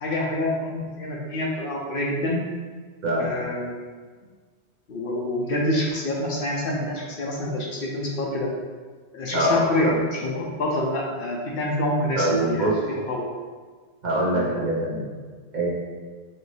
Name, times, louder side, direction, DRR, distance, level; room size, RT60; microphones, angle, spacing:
voice 1, 0.0-2.4 3.2-3.8 4.9-8.5 9.1-12.7 13.1-13.3 14.3-14.5, left 1 dB, 60° left, -2 dB, 0.7 m, -27 dB
voice 2, 9.3-10.0 12.2-12.8 14.0-15.0 15.5-15.7, right 1 dB, 45° right, -6 dB, 0.9 m, -23 dB
4.3 x 2.6 x 3.2 m, 1.5 s
omnidirectional pair, 1.1 m